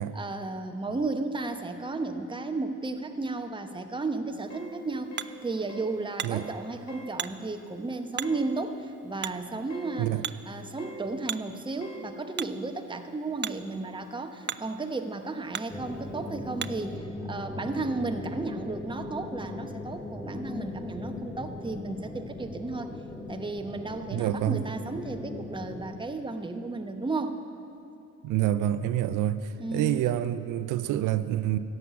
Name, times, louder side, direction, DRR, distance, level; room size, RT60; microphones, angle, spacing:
voice 1, 0.0-5.1 5.4-10.1 10.4-22.9 23.3-27.4 29.6-30.1, right 3 dB, 15° right, 6 dB, 0.9 m, -34 dB
Hammer, 4.3-17.0, right 9 dB, 40° right, 0.4 m, -41 dB
sound 1, 4.5-4.7 5.1-5.4 5.7-5.9 6.3-6.6 6.9-7.1 8.2-8.5 9.7-10.0 10.8-11.0 11.8-12.1, right 1 dB, 60° left, 1.7 m, -45 dB
sound 2, 15.7-26.0, left 2 dB, 10° left, 1.1 m, -39 dB
voice 2, 24.1-24.6 28.2-31.6, right 12 dB, 90° right, 13 dB, 0.5 m, -27 dB
13.5 x 7.4 x 9.5 m, 2.7 s
cardioid pair, 90°, 30 cm